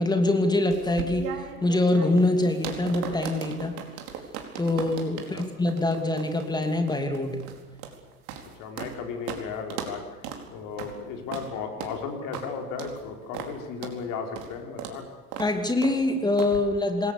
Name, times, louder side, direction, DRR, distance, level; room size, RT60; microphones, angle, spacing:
voice 1, 0.0-3.8 4.6-7.5 15.4-17.1, left 2 dB, 10° left, 6 dB, 2.9 m, -24 dB
sound 1, 0.7-9.0 9.3-9.4 9.7-10.0 10.2-10.4 10.8-10.9 11.3-11.5 11.8-12.0 12.3-12.5 12.8-13.0 13.3-13.5 13.8-14.0 14.4-14.5 14.8-15.0 15.3-15.5 15.8-16.0 16.4-16.6, right 8 dB, 50° right, 4.6 m, -37 dB
voice 2, 8.6-10.3 10.5-15.1, left 5 dB, 45° left, 3 dB, 5.4 m, -35 dB
27.0 x 21.0 x 7.0 m, 1.3 s
figure-of-eight pair, 90°, 45 cm